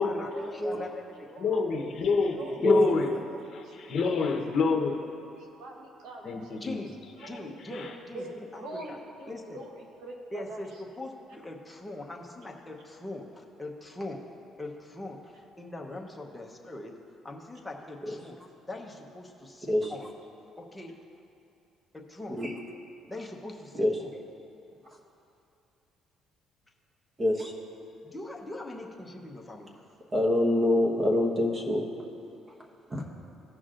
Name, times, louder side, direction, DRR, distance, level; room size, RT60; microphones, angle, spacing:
voice 1, 0.3-1.5 1.7-1.9 2.3-2.6 2.8-3.0 3.3-4.4 5.4-6.8 7.2-10.8, right 1 dB, 90° right, 0 dB, 1.2 m, -44 dB
voice 2, 1.4-3.1 3.5-5.0 6.2-6.8 7.2-7.3 7.7-7.9, left 4 dB, 50° left, 2 dB, 0.9 m, -28 dB
voice 3, 2.6-3.0 18.0-18.2 19.6-19.9 22.3-22.5 23.7-24.0 27.2-27.5 30.1-31.9 32.9-33.0, left 1 dB, 25° right, 0 dB, 1.2 m, -25 dB
voice 4, 6.6-6.9 7.3-8.3 8.5-8.6 8.9-9.0 9.3-9.6 10.3-10.7 11.0-14.2 14.6-15.2 15.6-16.9 17.2-18.4 18.7-20.0 20.6-20.9 22.1-22.4 23.1-24.1 28.0-29.7, left 2 dB, 10° left, -1 dB, 0.9 m, -41 dB
15.5 x 6.0 x 2.5 m, 2.7 s
cardioid pair, 120°, 0 cm